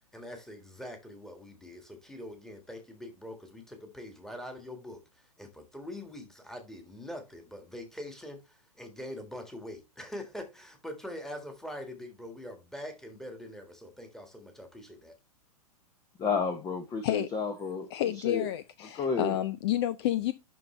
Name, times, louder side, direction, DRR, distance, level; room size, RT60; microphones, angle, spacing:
voice 1, 0.1-15.2, left 1 dB, ahead, 1.6 m, -43 dB
voice 2, 16.2-17.9 18.2-18.5 18.9-19.4, left 5 dB, 20° left, 0.9 m, -31 dB
voice 3, 17.9-20.3, left 13 dB, 45° left, 0.5 m, -30 dB
11.5 x 3.9 x 3.2 m
figure-of-eight pair, 105°, 20 cm